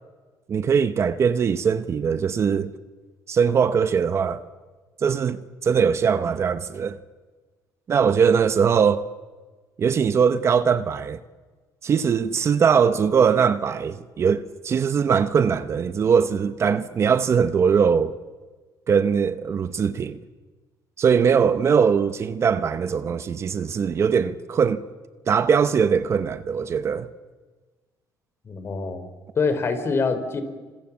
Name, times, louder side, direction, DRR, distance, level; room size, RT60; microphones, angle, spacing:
voice 1, 0.5-2.7 3.3-4.4 5.0-7.0 7.9-9.1 9.8-11.2 11.8-18.1 18.9-20.2 21.0-24.8 25.3-27.1, right 6 dB, 35° right, 1.0 m, -21 dB
voice 2, 28.4-29.1 29.4-30.4, left 4 dB, 35° left, 4.0 m, -25 dB
29.0 x 26.5 x 7.3 m
cardioid pair, 135°, 8 cm